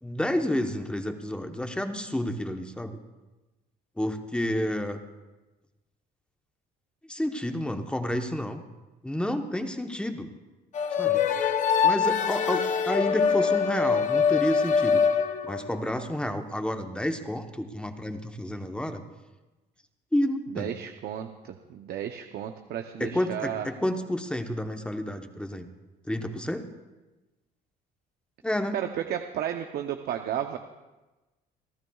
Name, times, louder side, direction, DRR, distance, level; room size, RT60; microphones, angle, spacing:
voice 1, 0.0-3.0 4.0-5.0 7.1-8.6 9.0-10.3 11.0-11.2 11.8-15.0 15.4-19.0 20.1-20.7 23.0-25.7 26.1-26.7 28.4-28.8, left 1 dB, 5° left, 6 dB, 1.0 m, -30 dB
sound 1, 10.7-15.8, left 6 dB, 45° left, 0.8 m, -24 dB
voice 2, 20.5-23.7 28.7-30.6, right 10 dB, 65° right, 6 dB, 0.8 m, -33 dB
28.5 x 12.0 x 2.4 m, 1.1 s
cardioid pair, 110°, 17 cm